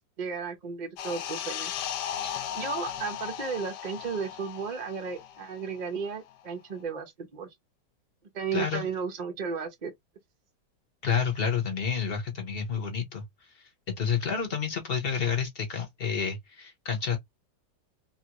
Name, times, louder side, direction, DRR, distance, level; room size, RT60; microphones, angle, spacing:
voice 1, 0.0-1.9 2.5-7.5 8.3-9.9, right 5 dB, 65° right, 0.4 m, -34 dB
sound 1, 1.0-6.0 6.3-6.5, left 10 dB, 75° left, 1.1 m, -36 dB
voice 2, 8.5-8.8 11.0-13.3 13.5-17.2, left 6 dB, 50° left, 0.7 m, -29 dB
3.0 x 2.4 x 2.8 m
omnidirectional pair, 1.9 m